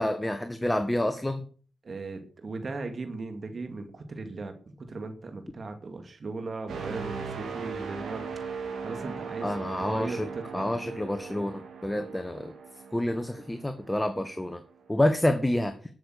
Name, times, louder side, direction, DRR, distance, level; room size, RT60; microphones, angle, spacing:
voice 1, 0.0-1.5 9.4-12.5 12.9-14.6 14.9-15.7, left 1 dB, 15° left, 9 dB, 1.4 m, -28 dB
voice 2, 1.8-8.3 8.8-9.5 9.8-10.7, right 3 dB, 55° right, 6 dB, 2.3 m, -37 dB
sound 1, 6.7-14.5 14.9-15.2, right 5 dB, 80° right, 3.5 m, -39 dB
11.5 x 6.9 x 6.6 m, 0.42 s
supercardioid pair, 40°, 0 cm